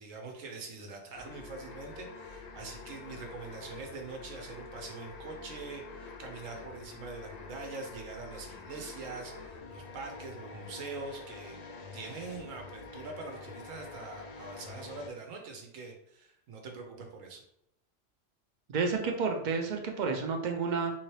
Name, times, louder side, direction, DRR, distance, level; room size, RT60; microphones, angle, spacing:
voice 1, 0.0-11.6 11.9-17.4, right 4 dB, 85° right, 3 dB, 1.1 m, -44 dB
sound 1, 1.1-15.1, left 4 dB, 85° left, 0.3 m, -46 dB
voice 2, 18.7-20.9, right 4 dB, 55° right, 3 dB, 0.5 m, -30 dB
3.7 x 2.8 x 3.1 m, 0.76 s
omnidirectional pair, 1.3 m